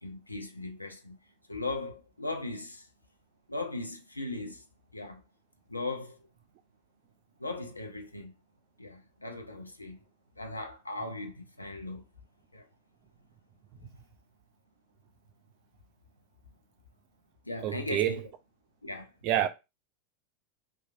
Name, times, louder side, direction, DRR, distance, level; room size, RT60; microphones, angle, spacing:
voice 1, 0.0-1.2 1.5-2.9 3.5-4.7 4.9-5.2 5.7-6.3 7.4-8.3 8.8-10.0 10.4-12.0 12.5-12.7 13.8-14.0 17.4-18.3 18.8-19.1, left 2 dB, 85° left, 0.5 m, -38 dB
voice 2, 17.6-18.2 19.2-19.5, right 12 dB, 45° right, 0.4 m, -27 dB
3.0 x 2.2 x 2.5 m
figure-of-eight pair, 85°, 0 cm